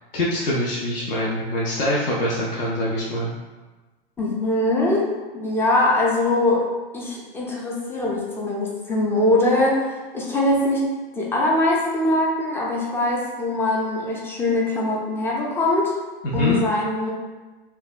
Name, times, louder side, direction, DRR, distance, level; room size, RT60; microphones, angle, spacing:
voice 1, 0.1-3.3 16.2-16.6, left 1 dB, 70° left, -5 dB, 0.6 m, -24 dB
voice 2, 4.2-6.6 6.9-10.8 11.1-15.9 16.3-17.1, left 2 dB, 10° left, -4 dB, 0.3 m, -22 dB
2.6 x 2.2 x 2.3 m, 1.2 s
hypercardioid pair, 110°, 29 cm